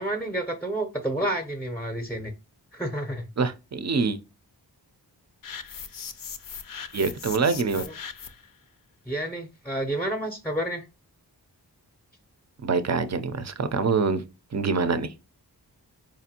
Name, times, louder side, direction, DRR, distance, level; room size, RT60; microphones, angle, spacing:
voice 1, 0.0-2.3 2.7-3.3 9.1-10.9, right 1 dB, 5° left, 0.6 m, -30 dB
voice 2, 3.4-4.2 6.9-7.8 12.6-14.2 14.5-15.1, right 4 dB, 40° right, 0.5 m, -25 dB
sound 1, 5.4-8.5, left 7 dB, 55° left, 0.5 m, -39 dB
4.7 x 2.5 x 2.8 m
wide cardioid pair, 75°, 41 cm